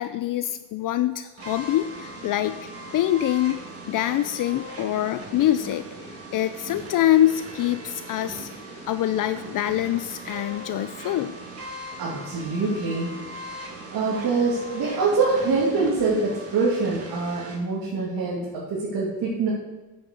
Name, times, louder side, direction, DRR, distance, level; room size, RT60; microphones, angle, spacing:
voice 1, 0.0-2.6 2.9-5.8 6.3-8.5 8.9-11.3, left 13 dB, 55° left, 12 dB, 0.5 m, -24 dB
sound 1, 1.4-17.6, right 1 dB, 35° right, 2.4 m, -39 dB
voice 2, 12.0-13.2 13.9-19.5, right 4 dB, 65° right, -6 dB, 2.7 m, -24 dB
9.3 x 6.7 x 6.7 m, 1.1 s
cardioid pair, 120°, 40 cm